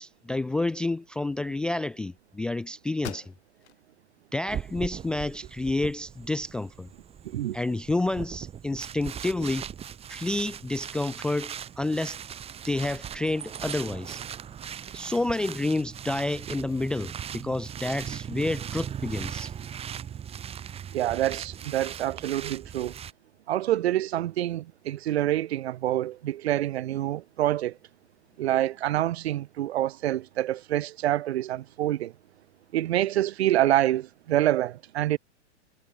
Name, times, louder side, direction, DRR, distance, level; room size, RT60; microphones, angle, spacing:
voice 1, 0.0-3.3 4.3-6.9 7.5-9.7 10.1-12.2 12.7-14.2 14.9-19.5, left 2 dB, 5° left, 0.4 m, -29 dB
sound 1, 3.0-3.8 4.3-4.4 4.9-5.8, left 12 dB, 65° left, 7.6 m, -43 dB
sound 2, 4.5-23.1, right 9 dB, 15° right, 6.8 m, -39 dB
voice 2, 7.2-7.6 20.9-22.9 23.5-27.8 28.4-32.1 32.7-35.2, right 13 dB, 60° right, 1.8 m, -26 dB
hypercardioid pair, 155°, 35 cm